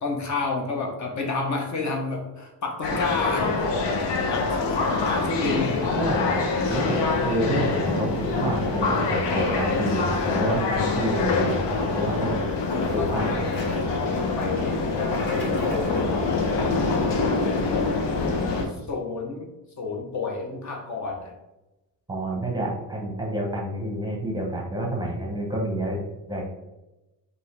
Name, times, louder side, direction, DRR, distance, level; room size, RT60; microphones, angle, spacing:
voice 1, 0.0-3.7 4.3-5.9 13.0-13.8 14.3-16.7 17.1-18.1 18.6-19.5 19.8-21.3, left 3 dB, 40° left, 1 dB, 0.8 m, -31 dB
sound 1, 2.8-18.6, left 3 dB, 75° left, 0.9 m, -25 dB
voice 2, 5.9-12.3 12.9-13.6 22.1-26.0 26.3-26.4, right 1 dB, 10° right, -2 dB, 0.7 m, -28 dB
Toilet flush, 12.7-16.2, left 1 dB, 25° left, 1.3 m, -40 dB
5.3 x 2.7 x 3.2 m, 1.0 s
cardioid pair, 140°, 42 cm